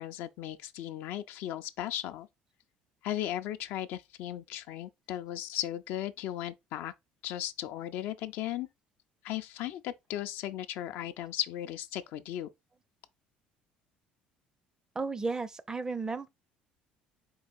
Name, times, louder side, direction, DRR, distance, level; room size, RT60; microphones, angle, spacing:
voice 1, 0.0-2.3 3.0-6.9 7.2-8.7 9.2-12.5, left 12 dB, 75° left, 0.5 m, -36 dB
voice 2, 15.0-16.3, right 4 dB, 20° right, 0.4 m, -34 dB
4.6 x 2.4 x 4.1 m
cardioid pair, 105°, 4 cm